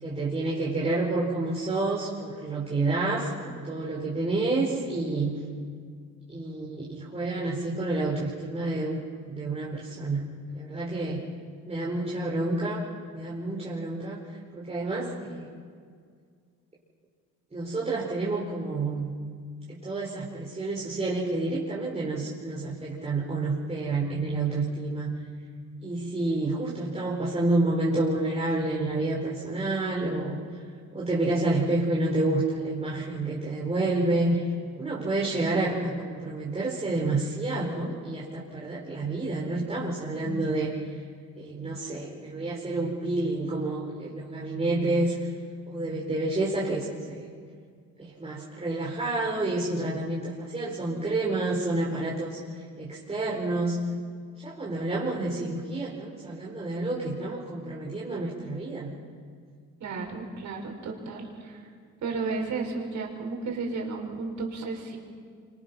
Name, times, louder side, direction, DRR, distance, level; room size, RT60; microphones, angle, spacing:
voice 1, 0.0-5.4 6.3-10.2 10.5-11.2 11.7-12.8 13.1-14.2 14.5-15.5 17.5-19.1 19.7-25.1 25.8-30.4 30.9-34.4 34.8-40.7 41.4-45.3 45.7-47.3 48.0-52.4 52.8-53.8 54.4-58.9, right 2 dB, 20° right, -6 dB, 4.6 m, -29 dB
voice 2, 59.8-61.6 62.0-65.0, right 4 dB, 70° right, 1 dB, 5.7 m, -33 dB
26.5 x 25.0 x 6.2 m, 2.1 s
cardioid pair, 90°, 30 cm